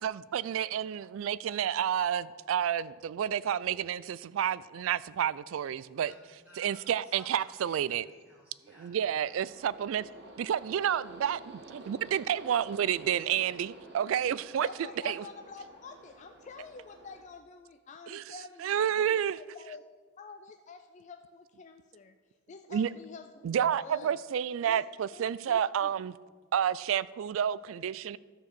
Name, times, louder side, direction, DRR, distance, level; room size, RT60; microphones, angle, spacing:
voice 1, 0.0-6.1 6.6-8.1 8.8-10.0 10.4-14.7 15.0-15.1 18.1-18.2 18.6-19.4 22.7-22.9 23.4-26.1 26.5-28.2, right 9 dB, 80° right, 0.3 m, -30 dB
voice 2, 5.9-9.2 9.8-10.3, right 1 dB, 10° right, 1.3 m, -57 dB
sound 1, 9.5-17.2, right 2 dB, 55° right, 1.5 m, -51 dB
voice 3, 14.6-19.8 20.2-22.2 22.5-24.2 24.6-25.9, left 5 dB, 35° left, 0.3 m, -48 dB
13.0 x 4.6 x 6.7 m
head